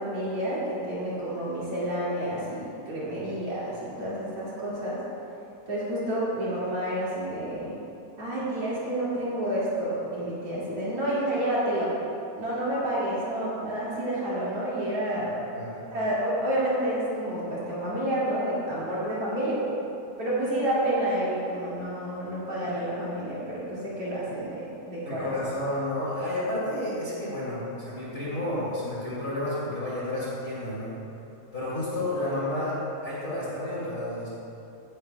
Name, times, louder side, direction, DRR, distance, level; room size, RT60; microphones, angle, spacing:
voice 1, 0.0-5.0 5.7-7.7 8.2-11.9 12.4-15.4 15.9-19.6 20.2-25.3, right 1 dB, 50° right, -9 dB, 3.2 m, -29 dB
voice 2, 15.2-15.8 25.0-30.9 31.5-32.8 33.0-34.3, left 1 dB, 25° left, -9 dB, 2.9 m, -31 dB
16.5 x 10.0 x 2.3 m, 2.7 s
omnidirectional pair, 3.6 m